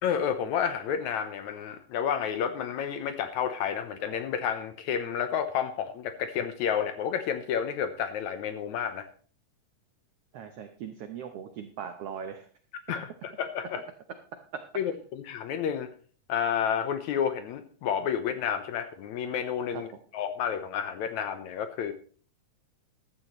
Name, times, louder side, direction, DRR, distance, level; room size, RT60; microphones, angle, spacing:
voice 1, 0.0-9.1 12.9-13.8 14.8-15.9 16.3-21.9, left 8 dB, 75° left, 10 dB, 1.9 m, -30 dB
voice 2, 10.3-12.5 19.7-19.8, right 8 dB, 80° right, 7 dB, 1.3 m, -39 dB
15.0 x 12.5 x 3.1 m, 0.42 s
omnidirectional pair, 3.9 m